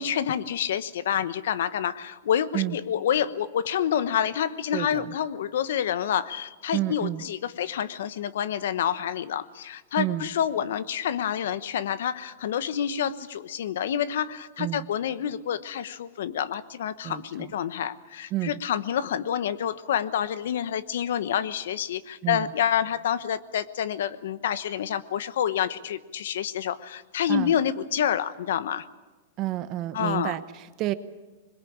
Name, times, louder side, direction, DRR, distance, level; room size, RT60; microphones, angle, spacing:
voice 1, 0.0-28.9 29.9-30.3, left 9 dB, 75° left, 15 dB, 1.0 m, -28 dB
voice 2, 4.7-5.1 6.7-7.2 10.0-10.3 14.6-14.9 17.0-17.5 18.3-18.6 22.2-22.5 27.3-27.5 29.4-30.9, right 15 dB, 30° right, 13 dB, 1.0 m, -30 dB
22.0 x 21.5 x 8.7 m, 1.2 s
supercardioid pair, 160°, 0 cm